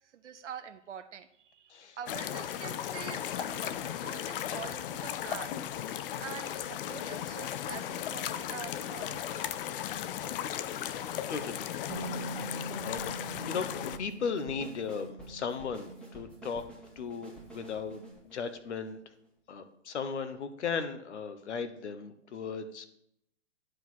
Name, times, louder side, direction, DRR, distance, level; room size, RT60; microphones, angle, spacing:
voice 1, 0.0-5.6 6.2-9.5, right 8 dB, 85° right, 10 dB, 0.6 m, -45 dB
sound 1, 2.1-14.0, left 10 dB, 50° left, 0.7 m, -36 dB
voice 2, 11.3-11.7 12.8-13.0 13.4-13.7 14.0-16.6 17.0-19.0 19.5-22.9, left 6 dB, 75° left, 11 dB, 1.2 m, -36 dB
Bass guitar, 11.9-18.1, right 3 dB, 45° right, 2.0 m, -44 dB
sound 2, 13.0-19.3, right 2 dB, 5° left, 2.2 m, -50 dB
10.5 x 5.0 x 6.1 m, 0.75 s
hypercardioid pair, 125°, 35 cm